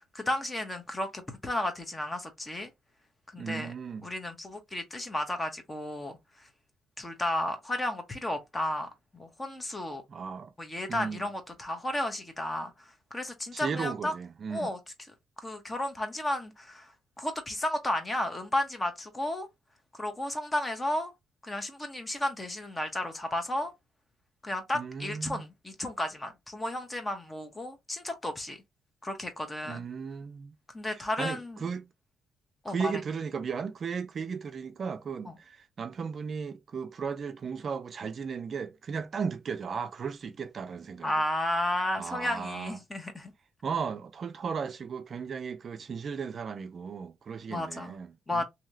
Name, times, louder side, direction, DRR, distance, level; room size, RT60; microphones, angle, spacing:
voice 1, 0.1-2.7 3.3-3.7 4.0-6.5 7.0-10.0 10.6-14.1 14.5-14.8 15.4-16.9 17.2-19.5 19.9-21.1 21.4-23.7 24.4-28.6 29.0-29.9 30.7-31.6 32.6-32.9 35.3-35.4 41.0-43.3 47.5-47.9 48.3-48.5, left 1 dB, 20° left, 0.9 m, -33 dB
voice 2, 3.4-4.1 10.1-10.5 10.9-11.3 13.5-14.7 24.7-25.4 29.7-30.6 30.9-31.9 32.7-41.1 42.0-42.8 43.6-48.5, right 6 dB, 50° right, 0.4 m, -36 dB
2.9 x 2.8 x 2.6 m
cardioid pair, 90°, 0 cm